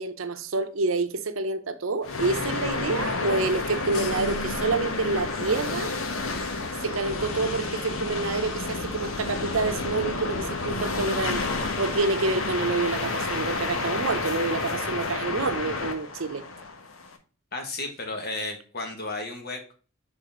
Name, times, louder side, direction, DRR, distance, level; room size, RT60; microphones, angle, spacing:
voice 1, 0.0-5.9 6.8-11.4 11.8-16.4, right 3 dB, 75° right, 0.7 m, -28 dB
sound 1, 2.0-17.2, left 3 dB, 85° left, 1.2 m, -30 dB
voice 2, 17.5-19.7, left 2 dB, 50° left, 1.6 m, -33 dB
6.6 x 4.0 x 3.7 m
head